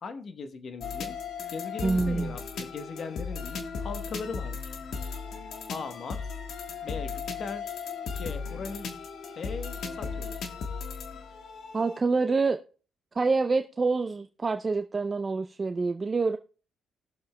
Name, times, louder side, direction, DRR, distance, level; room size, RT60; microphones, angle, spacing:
voice 1, 0.0-1.2 1.5-4.7 5.7-6.2 6.8-7.7 8.1-10.4, left 4 dB, 50° left, 1.1 m, -39 dB
sound 1, 0.8-12.0, left 5 dB, 70° left, 1.4 m, -36 dB
voice 2, 1.8-2.3 11.7-12.6 13.2-16.4, right 4 dB, 30° right, 0.5 m, -26 dB
19.5 x 6.9 x 2.2 m
cardioid pair, 90°, 0 cm